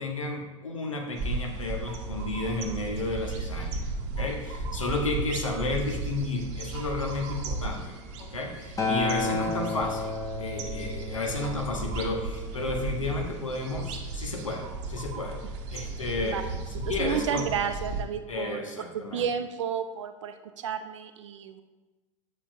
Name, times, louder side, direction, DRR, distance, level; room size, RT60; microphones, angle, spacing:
voice 1, 0.0-3.9 4.2-15.4 15.7-16.4 16.7-17.5 18.3-19.3, left 2 dB, 80° left, 2 dB, 1.0 m, -32 dB
sound 1, 1.2-18.0, right 3 dB, 45° right, 0.9 m, -35 dB
Acoustic guitar, 8.8-13.1 13.9-14.0, left 3 dB, 20° left, 1.3 m, -32 dB
voice 2, 17.0-18.6 18.9-21.6, right 8 dB, 65° right, 9 dB, 0.6 m, -32 dB
8.6 x 6.7 x 2.6 m, 1.2 s
figure-of-eight pair, 80°, 17 cm